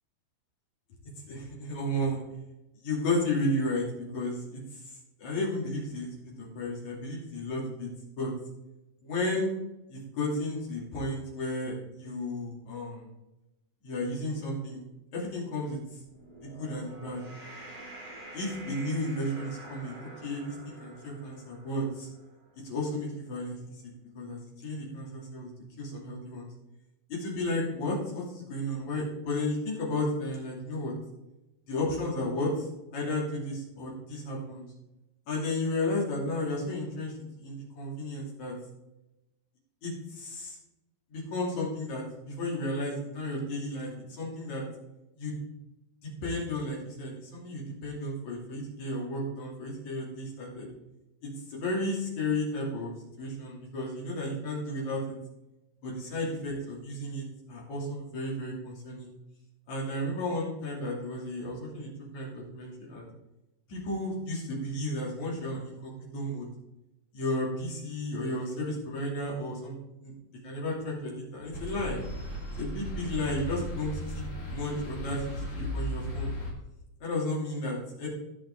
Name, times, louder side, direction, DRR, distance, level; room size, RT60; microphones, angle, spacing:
voice 1, 1.3-2.2 2.8-3.9 4.1-4.8 5.2-6.1 6.4-7.9 8.2-8.3 9.0-9.5 9.9-13.1 13.8-14.9 15.1-15.8 16.4-17.2 18.3-22.1 22.6-23.8 24.2-25.5 25.8-26.5 27.1-30.9 31.7-32.7 32.9-34.7 35.3-38.6 39.8-40.6 41.1-44.7 45.2-45.4 46.0-50.7 51.2-52.9 53.2-55.2 55.8-59.1 59.7-63.1 63.7-66.5 67.1-69.7 70.0-70.1 70.4-72.0 72.6-76.3 77.0-78.1, left 1 dB, 55° left, -3 dB, 4.0 m, -33 dB
sound 1, 16.0-22.5, right 1 dB, 35° right, 2.2 m, -47 dB
sound 2, 71.5-76.5, equal, 30° left, 1.8 m, -36 dB
16.5 x 5.8 x 3.7 m, 0.96 s
omnidirectional pair, 4.0 m